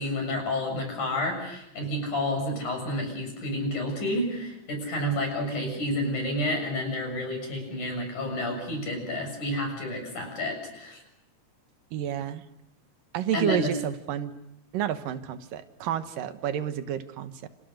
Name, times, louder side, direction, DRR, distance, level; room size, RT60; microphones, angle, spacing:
voice 1, 0.0-11.0 13.3-13.7, left 1 dB, 65° left, 4 dB, 8.3 m, -30 dB
voice 2, 11.9-12.4 13.1-14.3 14.7-17.5, right 10 dB, 90° right, 10 dB, 2.9 m, -30 dB
29.0 x 28.0 x 6.6 m, 0.84 s
omnidirectional pair, 3.8 m